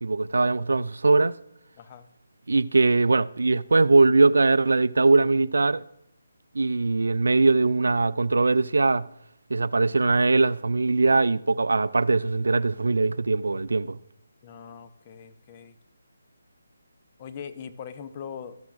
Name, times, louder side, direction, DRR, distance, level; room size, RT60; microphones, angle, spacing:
voice 1, 0.0-1.4 2.5-5.8 6.5-9.1 9.5-14.0, right 3 dB, 75° right, 0.4 m, -21 dB
voice 2, 14.4-15.7 17.2-18.6, left 7 dB, 30° left, 0.7 m, -41 dB
14.0 x 13.0 x 2.5 m
figure-of-eight pair, 155°, 0 cm